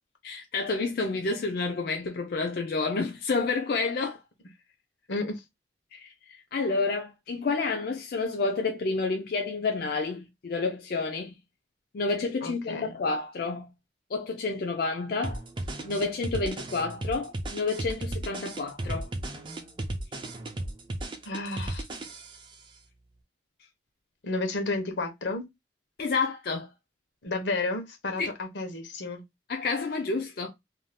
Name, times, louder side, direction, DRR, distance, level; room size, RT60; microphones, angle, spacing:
voice 1, 0.2-4.2 5.9-11.3 11.9-13.7 14.1-15.4 15.8-19.1 26.0-26.7 28.2-28.3 29.5-30.5, left 3 dB, 55° left, 0.4 m, -29 dB
voice 2, 5.1-5.4 12.4-12.9 21.2-21.9 24.2-25.4 27.2-29.2, left 2 dB, 80° left, 0.8 m, -32 dB
sound 1, 15.2-22.5, right 1 dB, 25° right, 0.4 m, -35 dB
2.6 x 2.3 x 3.2 m
head